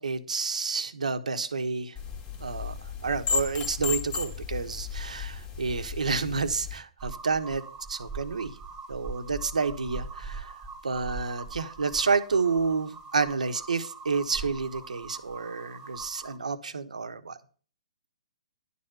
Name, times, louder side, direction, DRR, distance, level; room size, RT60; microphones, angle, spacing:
voice 1, 0.0-1.9 2.4-2.7 3.0-7.6 7.9-8.5 8.9-10.6 10.8-17.4, right 4 dB, 90° right, 9 dB, 1.2 m, -29 dB
sound 1, 2.0-6.8, left 6 dB, 25° left, 1.9 m, -34 dB
sound 2, 7.0-16.4, right 4 dB, 15° right, 1.5 m, -42 dB
11.0 x 4.2 x 7.8 m, 0.40 s
hypercardioid pair, 145°, 4 cm